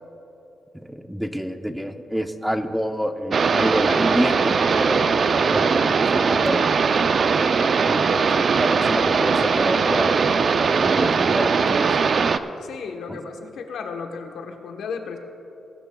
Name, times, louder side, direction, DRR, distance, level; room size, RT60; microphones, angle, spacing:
voice 1, 0.7-5.1 5.5-6.8 7.9-12.1 13.1-13.3, equal, 5° right, 7 dB, 0.6 m, -28 dB
sound 1, 3.3-12.4, right 5 dB, 50° right, 0.4 m, -20 dB
voice 2, 12.6-15.2, left 5 dB, 80° left, 5 dB, 1.1 m, -34 dB
20.5 x 12.5 x 2.3 m, 2.7 s
cardioid pair, 95°, 0 cm